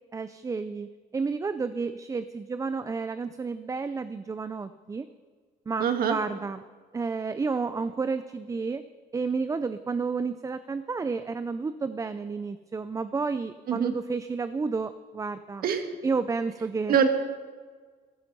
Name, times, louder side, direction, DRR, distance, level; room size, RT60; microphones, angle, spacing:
voice 1, 0.1-5.1 5.7-6.6 6.9-8.8 9.1-15.7 16.0-17.0, right 4 dB, 20° right, 12 dB, 0.5 m, -31 dB
voice 2, 5.8-6.2 13.7-13.9 15.6-15.8 16.9-17.1, right 7 dB, 60° right, 7 dB, 1.7 m, -23 dB
15.0 x 12.0 x 5.4 m, 1.5 s
cardioid pair, 110°, 17 cm